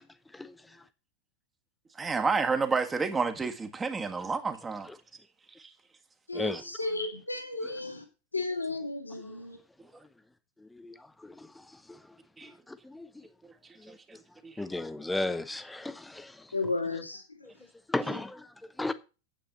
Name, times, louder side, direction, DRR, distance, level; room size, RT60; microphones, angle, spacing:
voice 1, 0.3-0.8 6.3-6.7 9.1-9.2 10.6-12.2 12.4-13.3 13.8-14.0 14.6-16.5 17.4-17.5 17.9-18.9, left 2 dB, 5° left, 0.9 m, -36 dB
voice 2, 2.0-4.9 5.6-5.7 12.4-12.5 13.9-14.2 14.4-14.6, right 4 dB, 15° right, 1.6 m, -30 dB
voice 3, 6.3-8.0 8.3-9.6 16.5-17.2, left 3 dB, 85° left, 2.5 m, -33 dB
9.1 x 8.6 x 6.6 m
figure-of-eight pair, 90°, 0 cm